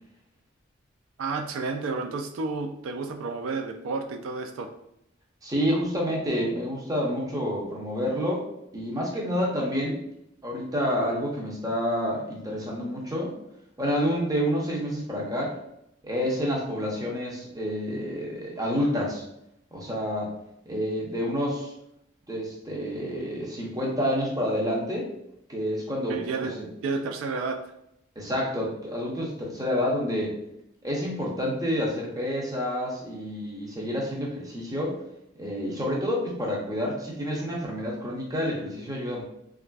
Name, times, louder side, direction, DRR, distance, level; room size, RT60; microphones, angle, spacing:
voice 1, 1.2-4.7 26.1-26.6 26.8-27.6, right 4 dB, 80° right, 5 dB, 0.3 m, -31 dB
voice 2, 5.4-8.5 8.7-10.0 10.4-13.3 13.8-15.5 16.0-19.2 19.7-20.3 20.7-21.7 22.3-25.1 25.5-26.2 28.2-30.4 30.8-35.0 35.4-39.2, equal, 20° right, -3 dB, 0.6 m, -28 dB
3.4 x 2.4 x 2.2 m, 0.79 s
head